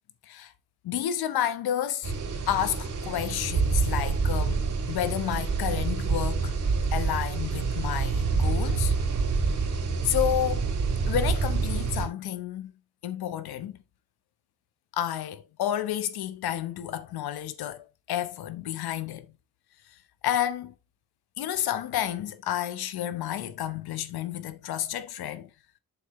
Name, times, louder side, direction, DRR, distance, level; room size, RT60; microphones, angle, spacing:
voice 1, 0.8-2.1 2.5-6.5 6.9-8.9 10.0-10.7 11.1-12.7 13.0-13.8 14.9-19.4 19.9-20.7 21.4-25.5, left 11 dB, 85° left, 0.9 m, -30 dB
sound 1, 2.0-12.1, right 4 dB, 55° right, 3.8 m, -27 dB
7.5 x 6.6 x 2.9 m
cardioid pair, 90°, 36 cm